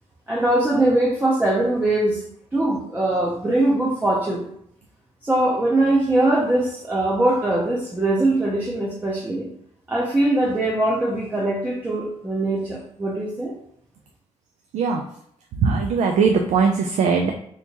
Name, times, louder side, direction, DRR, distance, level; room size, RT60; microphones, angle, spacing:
voice 1, 0.3-2.2 2.5-4.5 5.2-9.5 9.9-13.5, right 1 dB, 15° right, -4 dB, 0.5 m, -21 dB
voice 2, 15.5-17.3, right 5 dB, 85° right, 3 dB, 0.4 m, -20 dB
3.4 x 2.9 x 2.9 m, 0.69 s
wide cardioid pair, 165°, 12 cm